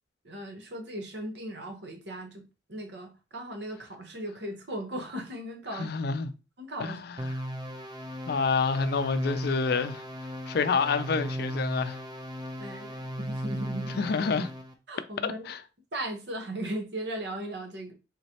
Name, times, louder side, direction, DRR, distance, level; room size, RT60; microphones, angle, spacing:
voice 1, 0.2-2.4 2.7-5.9 6.6-7.0 12.6-14.0 14.9-15.4 15.9-17.9, right 1 dB, 70° right, 0.9 m, -37 dB
voice 2, 5.7-6.3 6.8-7.0 8.3-10.0 10.5-12.0 14.0-14.5 15.2-15.6, left 5 dB, 60° left, 0.4 m, -28 dB
sound 1, 7.2-14.7, equal, 25° right, 0.5 m, -36 dB
3.8 x 3.1 x 2.8 m
head